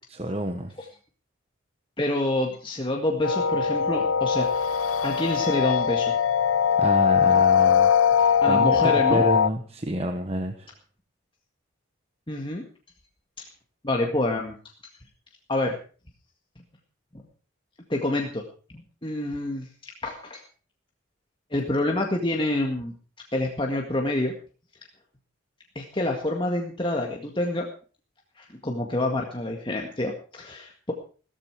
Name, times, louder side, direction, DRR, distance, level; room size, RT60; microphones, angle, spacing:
voice 1, 0.1-0.7 6.8-10.7, right 1 dB, 30° right, 6 dB, 1.2 m, -29 dB
voice 2, 2.0-6.1 8.4-9.2 12.3-12.6 13.8-14.5 15.5-15.8 17.1-17.2 17.9-18.4 18.7-20.4 21.5-22.9 23.3-24.3 25.8-27.7 28.4-30.9, left 1 dB, 25° left, 1 dB, 1.9 m, -27 dB
sound 1, 3.2-9.5, left 7 dB, 85° left, 0.6 m, -21 dB
16.0 x 14.5 x 4.8 m, 0.40 s
head